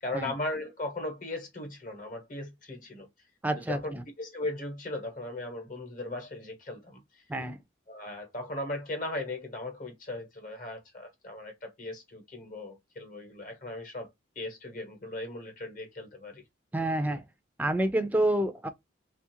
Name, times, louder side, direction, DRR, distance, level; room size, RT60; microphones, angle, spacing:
voice 1, 0.0-3.1 3.6-7.2 7.9-14.1 14.4-16.4, left 2 dB, 45° left, 0.9 m, -38 dB
voice 2, 3.4-4.0 7.3-7.6 16.7-17.2 17.6-18.7, right 1 dB, 10° right, 0.3 m, -28 dB
2.8 x 2.4 x 2.8 m
head